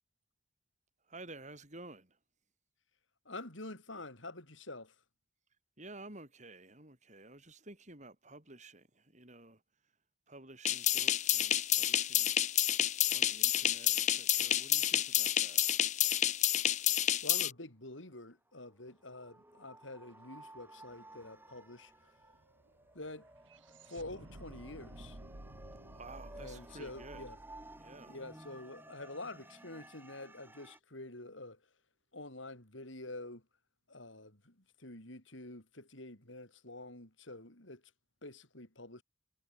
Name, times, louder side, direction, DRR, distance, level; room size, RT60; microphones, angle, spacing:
voice 1, 1.0-2.2 5.8-9.6 10.3-12.7 13.1-15.7 25.9-27.3 27.8-28.2, right 2 dB, 35° right, 6.5 m, -52 dB
voice 2, 3.2-4.9 16.8-17.0 17.2-21.9 22.9-23.3 23.7-25.2 26.3-27.4 28.1-31.6 32.1-33.4 33.9-37.8 38.2-39.0, left 2 dB, 70° left, 6.2 m, -47 dB
sound 1, 10.7-17.5, left 12 dB, 35° left, 0.5 m, -29 dB
sound 2, 18.5-30.8, right 1 dB, 10° right, 8.0 m, -56 dB
sound 3, 20.5-20.6 20.9-29.1, right 1 dB, 75° right, 2.6 m, -54 dB
head